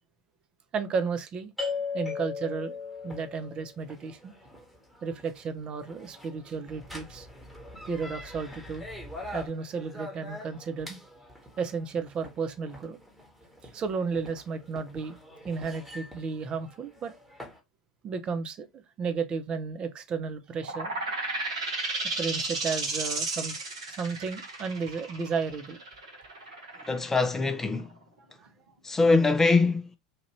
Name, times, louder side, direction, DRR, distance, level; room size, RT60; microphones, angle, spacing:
voice 1, 0.7-1.5 1.9-2.8 3.0-4.3 5.0-7.3 7.9-8.8 9.3-11.0 11.6-13.0 13.7-15.2 15.4-17.1 18.0-20.9 22.0-23.6 23.9-25.8 26.7-26.8 28.4-28.5, right 5 dB, 30° right, 0.6 m, -33 dB
sound 1, 1.6-17.6, left 3 dB, 5° right, 1.2 m, -41 dB
sound 2, 20.6-28.0, right 3 dB, 75° right, 1.1 m, -33 dB
voice 2, 26.5-27.9 28.8-30.0, left 3 dB, 15° left, 0.6 m, -24 dB
2.9 x 2.5 x 3.0 m
figure-of-eight pair, 85°, 3 cm